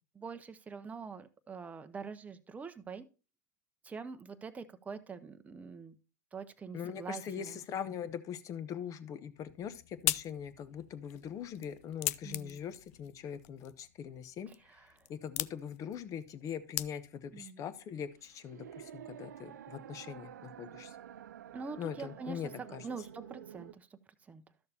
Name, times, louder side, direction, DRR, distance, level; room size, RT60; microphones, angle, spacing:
voice 1, 0.1-3.1 3.8-6.0 6.3-7.6 12.2-12.6 14.7-15.0 17.3-17.6 21.5-23.9 24.3-24.4, right 5 dB, 15° right, 9 dB, 0.7 m, -45 dB
voice 2, 6.7-14.5 15.1-21.0 21.8-22.8, left 8 dB, 35° left, 14 dB, 0.8 m, -42 dB
sound 1, 9.4-17.4, left 17 dB, 60° left, 0.3 m, -41 dB
sound 2, 17.7-23.7, right 10 dB, 80° right, 0.4 m, -50 dB
12.5 x 6.6 x 2.8 m, 0.33 s
hypercardioid pair, 95°, 9 cm